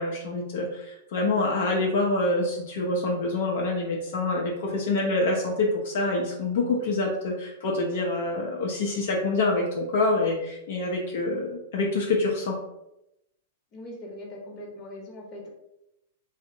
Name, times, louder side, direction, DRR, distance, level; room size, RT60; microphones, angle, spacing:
voice 1, 0.0-12.6, left 2 dB, 65° left, -1 dB, 0.5 m, -26 dB
voice 2, 13.7-15.5, left 1 dB, 30° left, -1 dB, 0.8 m, -41 dB
2.6 x 2.0 x 2.6 m, 0.86 s
hypercardioid pair, 135°, 0 cm